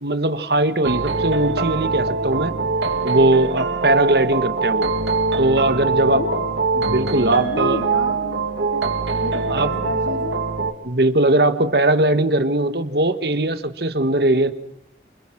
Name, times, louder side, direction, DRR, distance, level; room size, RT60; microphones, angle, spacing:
voice 1, 0.0-2.5 3.0-4.9 5.4-6.2 6.8-7.8 9.5-9.7 10.8-14.5, right 2 dB, 60° right, 10 dB, 1.7 m, -19 dB
sound 1, 0.8-10.7, right 4 dB, 80° right, 2.7 m, -23 dB
voice 2, 6.1-6.6 7.3-8.5 8.7-8.8 9.2-10.4, left 2 dB, 85° left, 5 dB, 2.6 m, -30 dB
29.5 x 28.0 x 6.0 m, 0.79 s
head